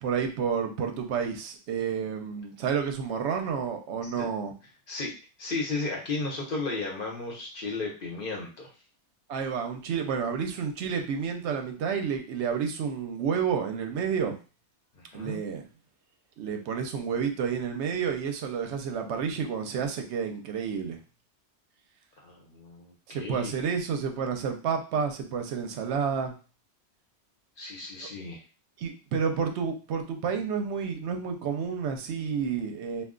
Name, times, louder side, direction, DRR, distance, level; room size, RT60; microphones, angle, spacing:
voice 1, 0.0-4.5 9.3-14.3 15.1-15.6 16.4-21.0 23.1-26.3 28.0-28.1 28.8-33.0, right 6 dB, 75° right, 5 dB, 0.9 m, -30 dB
voice 2, 5.4-8.7 14.9-15.4 22.2-23.5 27.6-28.4, left 3 dB, 55° left, -1 dB, 0.9 m, -34 dB
2.4 x 2.2 x 3.6 m, 0.34 s
omnidirectional pair, 1.2 m